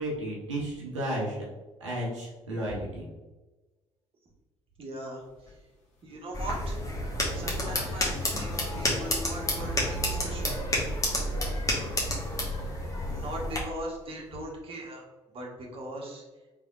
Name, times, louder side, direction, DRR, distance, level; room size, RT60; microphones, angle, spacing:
voice 1, 0.0-1.4 1.8-3.1, right 1 dB, 80° right, -4 dB, 0.6 m, -33 dB
voice 2, 4.8-5.2 6.0-6.8 7.3-10.5 13.0-15.0 15.3-16.2, right 1 dB, 35° right, -1 dB, 1.0 m, -40 dB
sound 1, 5.2-12.3 12.6-14.4, left 2 dB, 45° left, 1.3 m, -43 dB
sound 2, 6.3-13.6, left 1 dB, 20° left, 1.1 m, -30 dB
3.4 x 3.3 x 2.3 m, 1.1 s
figure-of-eight pair, 45°, 15 cm